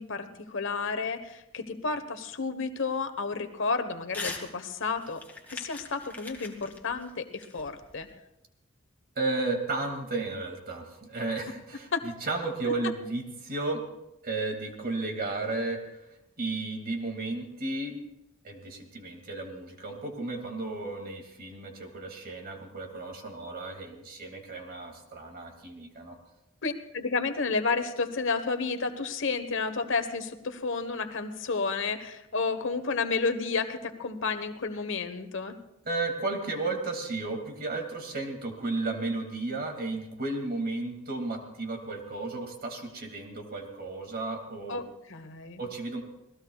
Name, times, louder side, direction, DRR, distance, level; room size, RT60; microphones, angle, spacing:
voice 1, 0.0-5.2 5.5-8.1 11.9-12.0 26.6-35.6 44.7-45.6, left 4 dB, 65° left, 8 dB, 1.2 m, -31 dB
Crumpling crinkling / Tearing, 4.1-4.5 4.8-8.1, left 3 dB, 10° left, 2.0 m, -41 dB
voice 2, 9.2-13.8 14.2-15.8 16.4-18.0 18.4-26.2 35.8-44.8 45.6-46.0, right 2 dB, 45° right, 3 dB, 2.3 m, -33 dB
27.0 x 18.5 x 2.4 m, 0.89 s
head